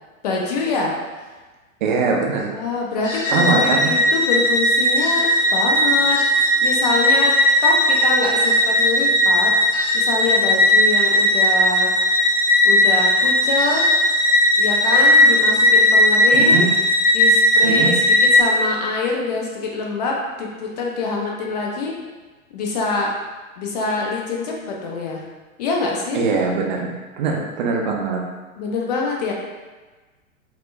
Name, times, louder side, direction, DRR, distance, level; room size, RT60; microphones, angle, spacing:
voice 1, 0.2-0.9 2.5-6.2 6.6-7.4 7.6-9.5 9.9-11.9 12.3-13.9 14.6-16.7 17.1-18.0 18.3-22.0 22.5-23.1 23.6-25.2 25.6-26.2 28.6-29.3, left 3 dB, 30° left, -1 dB, 0.5 m, -25 dB
voice 2, 1.8-2.6 3.3-3.9 16.3-16.7 17.6-17.9 26.1-28.2, right 4 dB, 35° right, 0 dB, 0.5 m, -22 dB
sound 1, 3.0-18.4, left 1 dB, 60° left, 1.3 m, -17 dB
4.1 x 2.1 x 2.5 m, 1.3 s
figure-of-eight pair, 105°, 43 cm